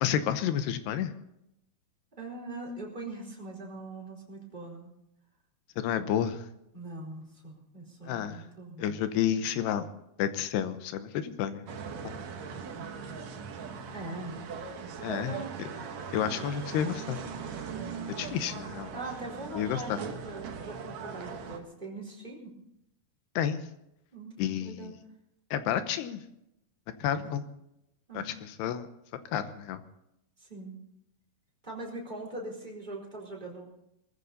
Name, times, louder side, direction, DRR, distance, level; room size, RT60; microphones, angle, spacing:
voice 1, 0.0-1.1 5.8-6.4 8.1-8.4 8.8-9.9 10.2-11.6 12.0-12.1 15.0-15.7 16.1-17.4 18.2-18.9 19.6-20.0 23.4-23.6 24.4-24.9 25.5-26.2 27.0-27.4 28.1-28.3 28.6-28.9 29.3-29.8, left 9 dB, 85° left, 10 dB, 3.1 m, -30 dB
voice 2, 2.1-4.9 6.7-9.0 13.9-14.4 15.1-15.5 18.9-22.5 24.1-24.9 27.2-27.4 28.1-28.4 30.4-30.8 31.6-33.6, right 2 dB, 10° right, -3 dB, 4.0 m, -41 dB
sound 1, 11.7-21.6, right 6 dB, 55° right, 2.1 m, -40 dB
20.5 x 14.5 x 4.1 m, 0.82 s
omnidirectional pair, 4.7 m